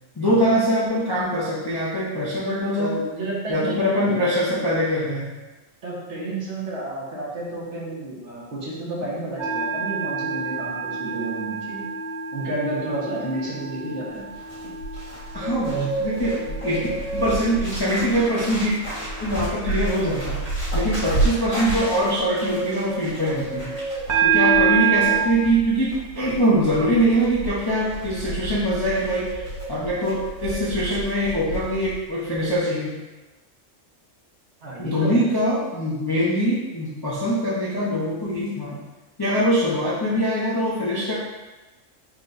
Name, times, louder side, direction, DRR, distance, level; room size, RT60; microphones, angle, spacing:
voice 1, 0.2-3.0 3.5-5.3 15.3-16.9 17.1-18.7 19.2-20.4 20.7-23.7 24.2-33.0 34.8-38.8 39.2-41.1, equal, 25° left, -8 dB, 0.5 m, -23 dB
voice 2, 2.8-4.2 5.8-11.9 12.3-14.4 24.5-24.7 34.6-35.3, right 2 dB, 65° right, -5 dB, 1.3 m, -31 dB
sound 1, 9.4-17.7 18.1-18.5 24.1-25.2, right 7 dB, 40° right, 0.7 m, -26 dB
Bird, 14.2-32.0 32.2-32.5, right 2 dB, 70° left, 2.0 m, -30 dB
4.4 x 2.2 x 3.8 m, 1.1 s
omnidirectional pair, 1.3 m